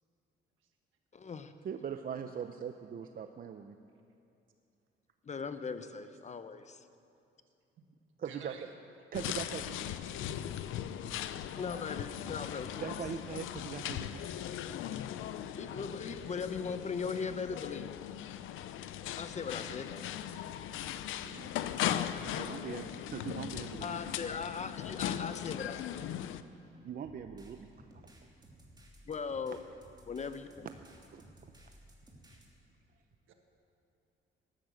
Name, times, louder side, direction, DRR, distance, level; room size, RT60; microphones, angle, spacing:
voice 1, 1.1-1.5 5.3-6.8 11.6-12.9 15.6-18.0 19.2-20.0 21.8-22.5 23.8-26.1 29.1-29.6 30.1-30.7, left 5 dB, 35° left, 11 dB, 0.8 m, -39 dB
voice 2, 1.6-3.8 8.2-8.6 9.1-10.0 12.8-14.2 22.2-24.1 26.8-27.7 31.1-31.2, right 7 dB, 45° right, 8 dB, 0.6 m, -41 dB
voice 3, 8.2-8.7 10.2-10.4 12.2-12.3 19.6-19.9 21.2-21.6 27.5-27.7 33.3-33.4, right 6 dB, 80° right, 4 dB, 1.7 m, -53 dB
sound 1, 9.1-26.4, left 11 dB, 90° left, 0.6 m, -39 dB
sound 2, 27.0-32.5, right 1 dB, 20° right, 2.7 m, -57 dB
13.0 x 12.0 x 7.8 m, 2.6 s
cardioid pair, 90°, 20 cm